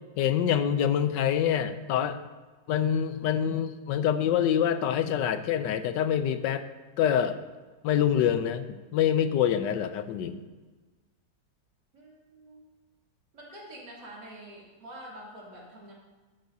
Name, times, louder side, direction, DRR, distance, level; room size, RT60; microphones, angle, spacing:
voice 1, 0.2-2.2 2.7-6.7 7.0-7.4 7.8-8.7 8.9-10.4, left 9 dB, 85° left, 11 dB, 1.3 m, -25 dB
voice 2, 11.9-12.6 13.3-15.9, right 1 dB, 70° right, -5 dB, 3.4 m, -46 dB
13.0 x 10.5 x 2.7 m, 1.3 s
omnidirectional pair, 1.9 m